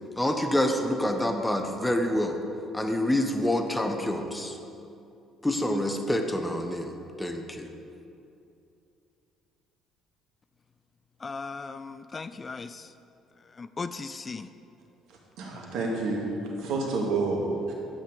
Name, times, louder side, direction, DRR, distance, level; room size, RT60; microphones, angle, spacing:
voice 1, 0.2-2.4 2.7-4.5 5.4-7.7, left 1 dB, 10° left, 5 dB, 1.3 m, -27 dB
voice 2, 11.2-12.9 13.6-14.5, left 4 dB, 35° left, 12 dB, 0.5 m, -37 dB
voice 3, 15.4-17.7, right 3 dB, 70° right, -1 dB, 2.2 m, -29 dB
12.5 x 8.8 x 5.0 m, 2.7 s
hypercardioid pair, 55°, 0 cm